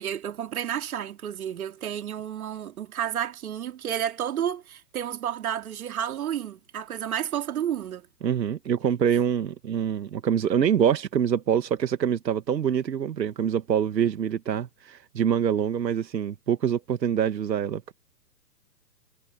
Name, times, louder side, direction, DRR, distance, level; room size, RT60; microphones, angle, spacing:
voice 1, 0.0-8.1, right 9 dB, 60° right, 3.5 m, -31 dB
voice 2, 8.2-17.9, right 8 dB, 85° right, 1.6 m, -25 dB
hypercardioid pair, 160°, 49 cm